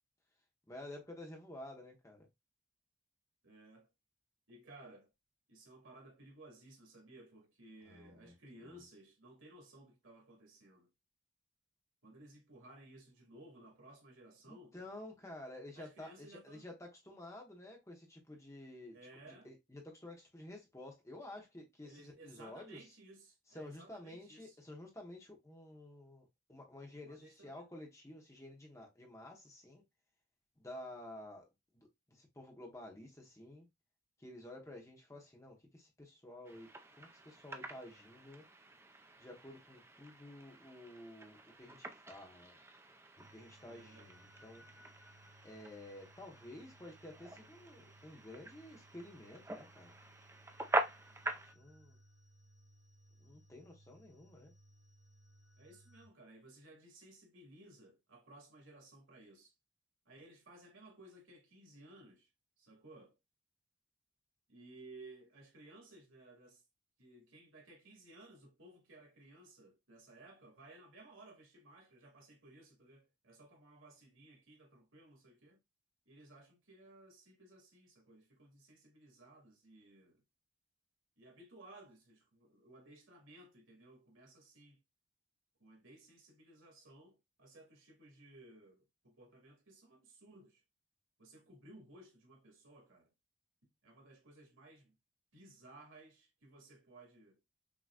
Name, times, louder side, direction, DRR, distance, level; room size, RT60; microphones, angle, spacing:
voice 1, 0.7-2.3 7.8-8.3 8.7-8.8 14.5-19.0 19.2-22.8 23.5-29.8 30.6-31.4 31.7-33.7 34.2-36.7 37.0-38.4 39.2-42.6 43.2-44.6 45.4-49.9 51.5-52.0 53.2-54.5, left 1 dB, 15° left, 1.1 m, -51 dB
voice 2, 3.4-3.9 4.5-5.1 5.5-10.9 12.0-14.8 15.7-16.7 18.9-19.5 21.8-24.6 27.0-27.7 43.6-44.1 55.6-59.5 60.1-62.3 62.6-63.2 64.5-66.6 67.0-75.6 76.1-80.2 81.2-84.8 85.6-90.6 91.2-93.1 93.8-94.9 95.3-97.4, right 2 dB, 90° right, 2.1 m, -58 dB
sound 1, 36.4-51.5, right 2 dB, 15° right, 0.5 m, -44 dB
sound 2, 43.2-56.1, right 1 dB, 50° left, 1.0 m, -64 dB
6.1 x 3.0 x 2.4 m
head